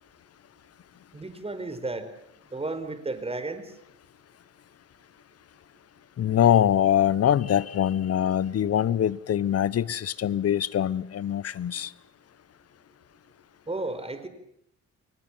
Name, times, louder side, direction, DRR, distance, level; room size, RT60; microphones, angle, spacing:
voice 1, 1.1-2.1 2.5-3.7 13.7-14.3, right 2 dB, 20° right, 4.7 m, -33 dB
voice 2, 6.2-11.9, left 10 dB, 55° left, 1.1 m, -23 dB
29.5 x 23.0 x 7.4 m
cardioid pair, 90°, 30 cm